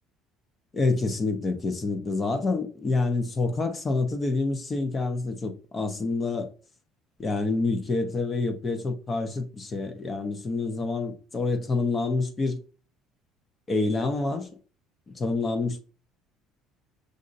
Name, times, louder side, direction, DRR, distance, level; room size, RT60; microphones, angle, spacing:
voice 1, 0.7-6.5 7.2-12.6 13.7-14.5 15.1-15.8, left 3 dB, 30° left, 0.8 m, -27 dB
6.5 x 2.6 x 2.6 m
supercardioid pair, 100°, 0 cm